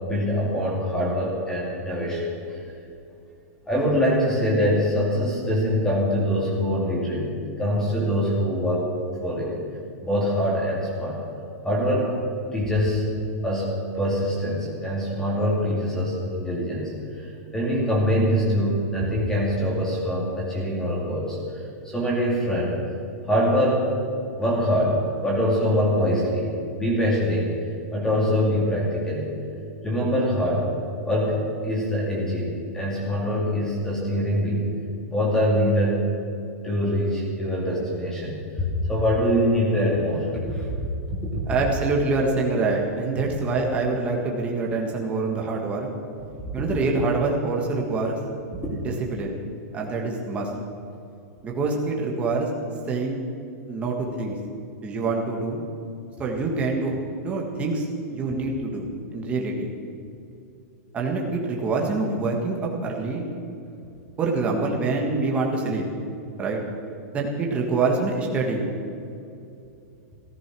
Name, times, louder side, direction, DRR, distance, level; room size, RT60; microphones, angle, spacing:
voice 1, 0.0-2.6 3.7-8.9 9.2-9.6 10.0-11.2 11.6-12.2 12.5-13.2 13.4-22.8 23.2-23.9 24.4-27.5 27.9-29.4 29.8-30.7 31.0-34.7 35.1-36.1 36.6-40.6 41.1-41.4 48.6-48.7, equal, 5° left, -5 dB, 2.4 m, -24 dB
voice 2, 41.5-45.9 46.5-48.2 48.7-49.4 49.7-50.5 51.4-52.5 52.9-53.2 53.7-54.4 54.8-55.6 56.2-56.9 57.2-59.7 60.9-63.2 64.2-65.8 66.4-66.6 67.1-68.6, right 3 dB, 15° right, 0 dB, 1.6 m, -25 dB
14.5 x 14.0 x 6.2 m, 2.6 s
supercardioid pair, 170°, 9 cm